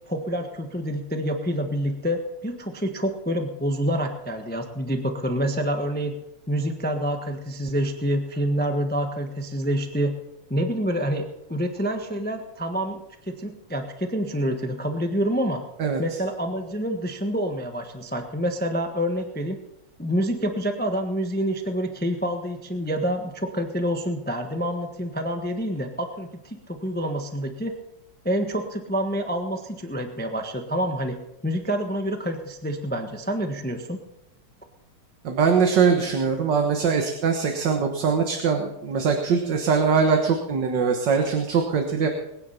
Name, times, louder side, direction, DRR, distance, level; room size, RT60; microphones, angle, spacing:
voice 1, 0.1-6.1 6.5-10.1 10.5-13.0 13.3-15.6 16.0-19.6 20.0-27.7 28.2-31.2 31.4-34.0, equal, 5° left, 5 dB, 0.8 m, -27 dB
voice 2, 35.2-42.1, right 5 dB, 55° right, 4 dB, 1.9 m, -22 dB
21.0 x 9.8 x 5.8 m, 0.88 s
omnidirectional pair, 2.4 m